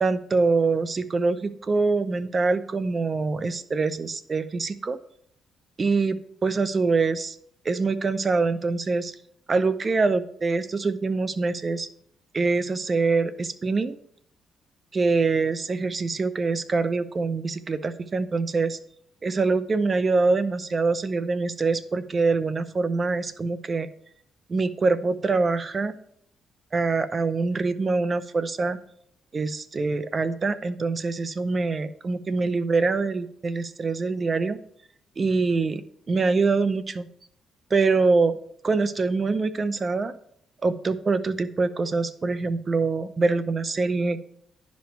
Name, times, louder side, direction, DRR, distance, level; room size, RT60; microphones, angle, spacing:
voice 1, 0.0-5.0 5.8-7.4 7.6-9.1 9.5-11.9 12.3-14.0 14.9-18.8 19.2-23.9 24.5-26.0 26.7-28.8 29.3-34.6 35.2-35.8 36.1-37.1 37.7-38.3 38.6-40.1 40.6-44.2, right 4 dB, 35° right, 14 dB, 0.6 m, -24 dB
10.5 x 5.3 x 4.5 m, 0.69 s
cardioid pair, 90°, 0 cm